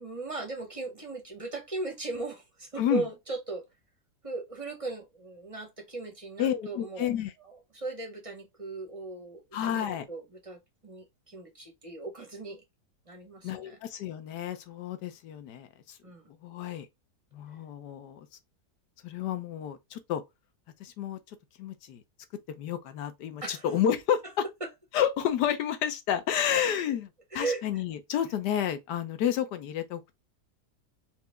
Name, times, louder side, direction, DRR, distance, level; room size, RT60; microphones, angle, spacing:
voice 1, 0.0-3.6 4.2-7.1 7.5-12.6 13.1-13.8 16.0-16.3 23.4-23.7 24.6-24.7 27.3-27.6, right 3 dB, 30° right, 0.6 m, -37 dB
voice 2, 6.4-7.3 9.5-10.1 13.4-16.0 16.4-16.9 17.3-18.3 19.0-20.2 20.8-21.2 21.6-22.0 22.6-24.4 24.9-30.2, left 9 dB, 80° left, 1.3 m, -30 dB
4.5 x 2.6 x 3.3 m
omnidirectional pair, 1.8 m